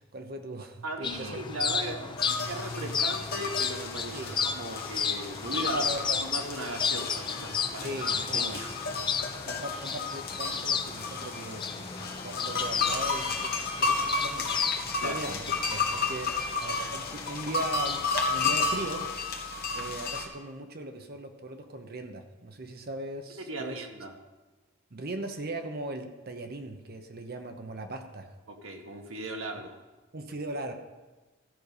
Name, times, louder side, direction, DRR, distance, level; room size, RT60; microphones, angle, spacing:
voice 1, 0.0-1.4 4.1-4.4 5.7-6.3 7.8-8.6 9.4-19.1 19.7-23.9 24.9-28.3 30.1-30.7, right 1 dB, 45° right, 6 dB, 0.9 m, -39 dB
voice 2, 0.8-5.9 6.2-8.7 15.0-15.2 23.4-24.1 28.5-29.7, right 2 dB, 75° right, 3 dB, 1.4 m, -37 dB
sound 1, 1.0-19.1, left 6 dB, 20° left, 0.4 m, -34 dB
sound 2, 2.2-20.3, left 4 dB, 50° left, 1.4 m, -32 dB
13.5 x 5.3 x 6.7 m, 1.2 s
head